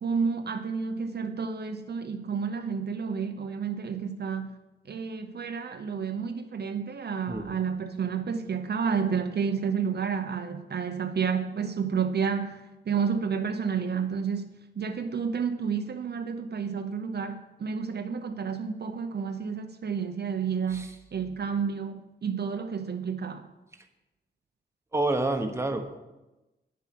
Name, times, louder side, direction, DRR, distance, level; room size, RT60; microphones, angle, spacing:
voice 1, 0.0-4.5 4.9-23.5, right 6 dB, 60° right, 0.7 m, -30 dB
voice 2, 24.9-25.9, right 2 dB, 15° right, 1.1 m, -28 dB
9.6 x 7.1 x 6.0 m
wide cardioid pair, 105°, 19 cm